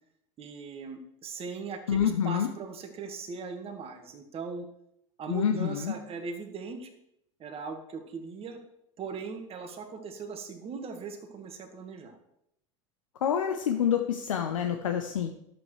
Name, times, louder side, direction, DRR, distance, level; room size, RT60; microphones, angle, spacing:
voice 1, 0.4-4.7 5.2-6.9 7.4-8.6 9.0-12.2, right 5 dB, 35° right, 5 dB, 1.6 m, -39 dB
voice 2, 1.9-2.5 5.3-6.0 13.2-15.3, left 8 dB, 85° left, 5 dB, 0.7 m, -27 dB
11.0 x 8.0 x 3.2 m, 0.78 s
hypercardioid pair, 85°, 16 cm